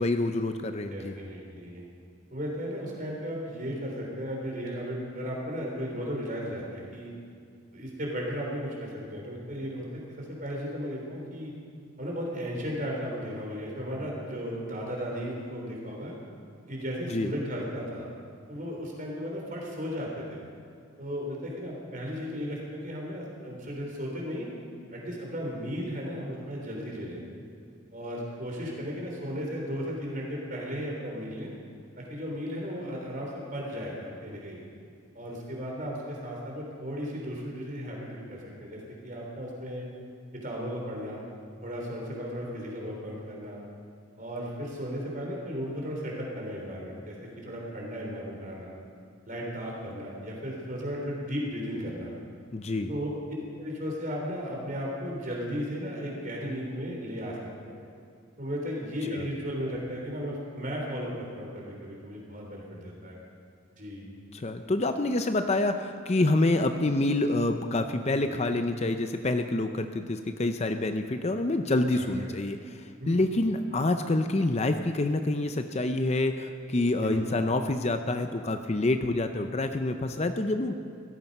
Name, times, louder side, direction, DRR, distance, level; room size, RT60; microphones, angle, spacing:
voice 1, 0.0-1.1 17.1-17.3 52.5-52.9 59.1-59.2 64.3-72.6 73.1-80.7, left 2 dB, 30° left, 7 dB, 0.5 m, -27 dB
voice 2, 0.9-1.8 2.3-7.1 7.7-11.5 12.0-16.1 16.7-18.1 18.5-20.4 21.0-24.5 24.9-27.2 27.9-31.5 32.0-34.6 35.1-39.9 40.3-41.3 41.6-43.6 44.2-48.8 49.3-52.1 52.9-53.1 53.6-57.8 58.4-63.2 63.8-64.1 68.2-68.4 71.9-72.3 73.0-73.3 77.0-77.3, equal, 40° right, -2 dB, 3.7 m, -35 dB
17.0 x 13.5 x 5.5 m, 2.2 s
head